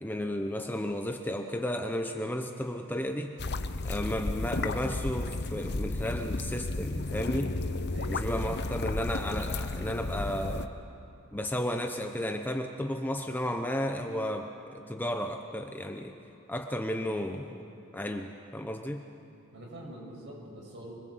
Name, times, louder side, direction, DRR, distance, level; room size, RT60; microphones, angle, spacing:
voice 1, 0.0-3.3 3.8-7.6 8.1-10.7 11.3-16.2 16.5-17.6 17.9-19.0, left 1 dB, 10° left, 4 dB, 0.8 m, -33 dB
sound 1, 3.4-10.7, left 2 dB, 50° left, 0.9 m, -33 dB
voice 2, 7.9-8.9 19.5-20.9, right 1 dB, 55° right, -2 dB, 6.7 m, -45 dB
25.0 x 20.5 x 8.0 m, 2.8 s
head